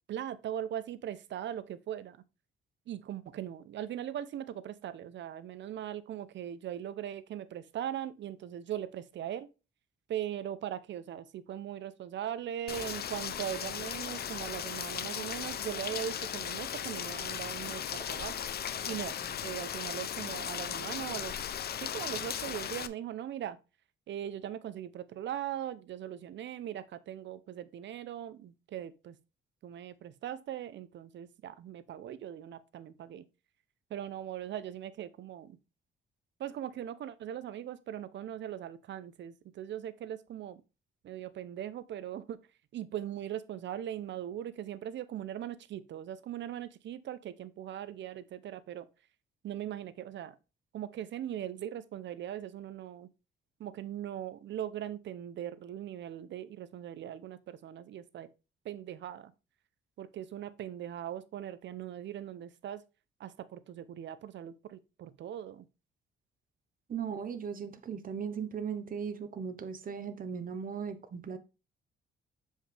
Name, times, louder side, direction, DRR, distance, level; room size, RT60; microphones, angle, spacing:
voice 1, 0.1-2.2 2.9-9.5 10.1-18.4 18.8-21.3 21.8-23.6 24.1-29.1 29.6-33.3 33.9-35.6 36.4-40.6 41.0-42.4 42.7-48.9 49.4-50.3 50.7-53.1 53.6-58.3 58.6-59.3 60.0-62.8 63.2-65.6, right 10 dB, 65° right, 0.8 m, -40 dB
Rain, 12.7-22.9, left 9 dB, 55° left, 0.7 m, -37 dB
voice 2, 66.9-71.4, right 6 dB, 45° right, 1.1 m, -37 dB
7.3 x 5.4 x 3.4 m
cardioid pair, 90°, 20 cm